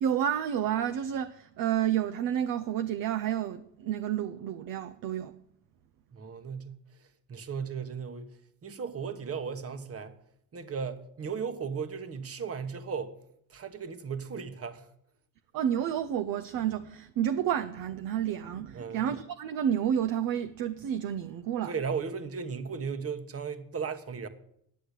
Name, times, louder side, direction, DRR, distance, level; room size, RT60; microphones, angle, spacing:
voice 1, 0.0-5.3 15.5-21.7, right 9 dB, 45° right, 0.7 m, -30 dB
voice 2, 6.1-6.8 7.3-8.3 8.6-10.2 10.5-13.1 13.5-14.9 18.7-19.1 21.6-24.3, right 6 dB, 30° right, 1.3 m, -36 dB
10.5 x 7.7 x 8.2 m
supercardioid pair, 95°, 49 cm